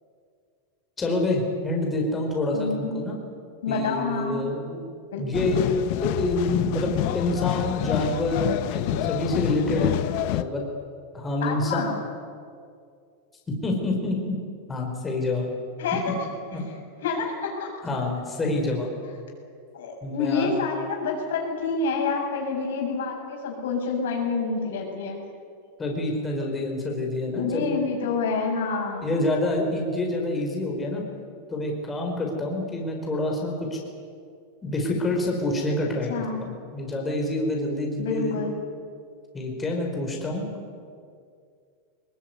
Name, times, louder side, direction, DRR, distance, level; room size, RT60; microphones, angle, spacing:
voice 1, 1.0-3.2 3.7-4.9 5.2-5.6 6.0-9.9 10.3-10.6 11.1-11.9 13.5-14.4 14.7-15.5 16.5-16.6 17.8-18.9 20.0-20.5 25.8-27.7 29.0-31.0 31.5-33.8 34.6-36.1 36.4-38.4 39.3-40.4, left 2 dB, 15° left, 0 dB, 4.9 m, -27 dB
voice 2, 2.5-2.9 3.6-4.5 5.1-5.5 11.4-11.9 15.8-16.0 17.0-17.7 19.7-25.2 27.3-29.1 36.1-36.4 38.0-38.5, left 4 dB, 80° left, 0 dB, 7.6 m, -28 dB
sound 1, 5.3-10.4, left 14 dB, 55° left, 1.0 m, -27 dB
21.0 x 20.5 x 9.6 m, 2.3 s
supercardioid pair, 135°, 0 cm